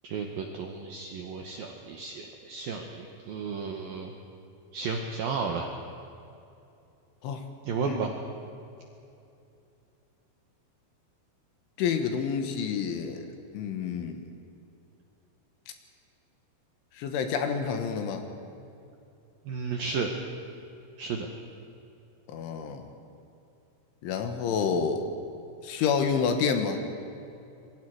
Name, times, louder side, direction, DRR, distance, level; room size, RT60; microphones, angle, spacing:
voice 1, 0.0-4.1 4.7-5.7 7.6-8.1 19.5-20.1 21.0-21.3, right 5 dB, 75° right, 2 dB, 2.1 m, -33 dB
voice 2, 11.8-13.3 13.5-14.2 17.0-18.2 22.3-22.8 24.0-25.0 25.6-26.8, left 6 dB, 75° left, 6 dB, 3.7 m, -28 dB
26.0 x 23.0 x 4.8 m, 2.7 s
omnidirectional pair, 5.8 m